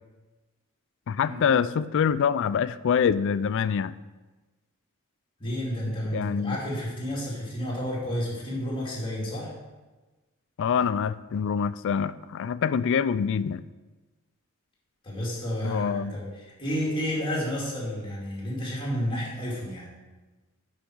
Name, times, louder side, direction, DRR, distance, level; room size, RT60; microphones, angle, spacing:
voice 1, 1.1-4.0 6.1-6.6 10.6-13.6 15.6-16.2, left 7 dB, 60° left, 16 dB, 0.3 m, -25 dB
voice 2, 5.4-9.6 15.0-19.9, equal, 25° left, -5 dB, 2.3 m, -31 dB
10.5 x 4.9 x 4.6 m, 1.2 s
head